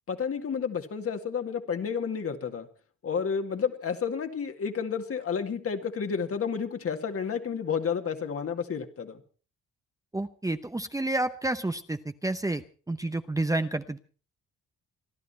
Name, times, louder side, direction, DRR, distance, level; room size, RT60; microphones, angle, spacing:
voice 1, 0.1-2.7 3.0-9.2, left 6 dB, 50° left, 6 dB, 2.2 m, -31 dB
voice 2, 10.1-14.0, right 2 dB, 10° right, 10 dB, 0.8 m, -30 dB
27.0 x 11.0 x 4.4 m, 0.38 s
cardioid pair, 90°, 30 cm